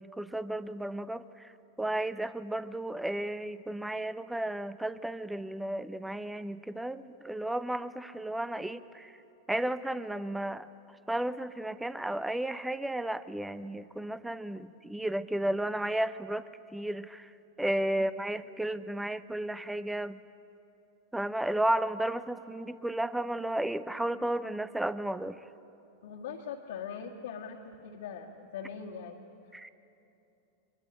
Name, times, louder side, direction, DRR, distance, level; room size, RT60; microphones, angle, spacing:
voice 1, 0.0-1.5 1.8-9.2 9.5-10.7 11.1-17.3 17.6-20.2 21.1-25.4 29.5-29.7, right 1 dB, 5° right, 15 dB, 0.8 m, -33 dB
voice 2, 26.0-29.2, left 7 dB, 60° left, -2 dB, 2.0 m, -41 dB
23.5 x 23.0 x 9.8 m, 2.9 s
figure-of-eight pair, 90°, 0 cm